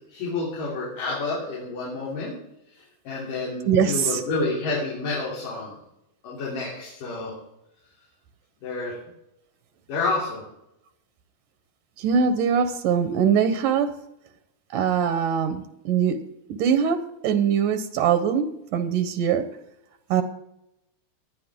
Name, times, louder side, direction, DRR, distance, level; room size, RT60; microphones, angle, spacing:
voice 1, 0.1-2.3 2.7-5.8 6.2-7.3 8.6-9.0 9.9-10.4, left 3 dB, 90° left, -6 dB, 4.8 m, -29 dB
voice 2, 3.7-4.2 12.0-13.9 14.7-16.2 16.5-18.5 18.7-19.5 20.1-20.2, right 7 dB, 80° right, 9 dB, 2.5 m, -22 dB
19.5 x 11.5 x 3.7 m, 0.83 s
omnidirectional pair, 3.7 m